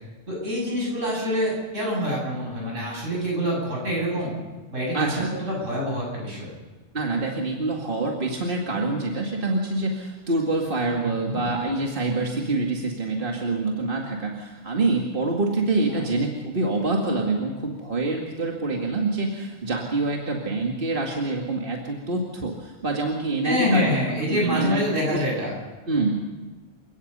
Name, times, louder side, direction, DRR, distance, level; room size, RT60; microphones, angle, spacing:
voice 1, 0.3-4.3 4.7-6.5 11.0-11.4 15.9-16.1 23.4-25.5, equal, 75° right, -3 dB, 8.2 m, -26 dB
voice 2, 4.9-5.3 6.9-24.0 24.3-24.8 25.9-26.2, right 2 dB, 45° right, 0 dB, 2.3 m, -26 dB
29.5 x 17.0 x 5.5 m, 1.3 s
omnidirectional pair, 1.3 m